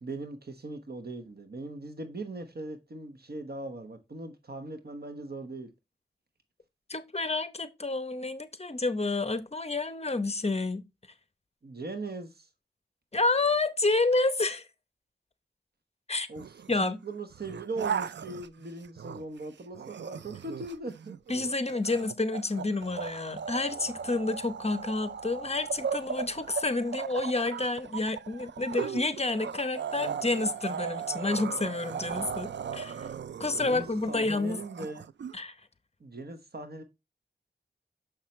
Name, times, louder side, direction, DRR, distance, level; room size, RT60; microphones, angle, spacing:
voice 1, 0.0-5.7 11.6-12.5 16.3-21.2 33.4-35.1 36.0-36.8, right 2 dB, 60° right, 1.2 m, -40 dB
voice 2, 6.9-10.8 13.1-14.6 16.1-16.3 16.7-17.0 21.3-33.1 33.4-34.6 35.3-35.5, left 3 dB, 35° left, 0.9 m, -29 dB
sound 1, 16.4-16.8 17.3-19.4 19.8-35.3, right 7 dB, 80° right, 0.4 m, -37 dB
6.6 x 5.8 x 3.2 m
wide cardioid pair, 65°, 18 cm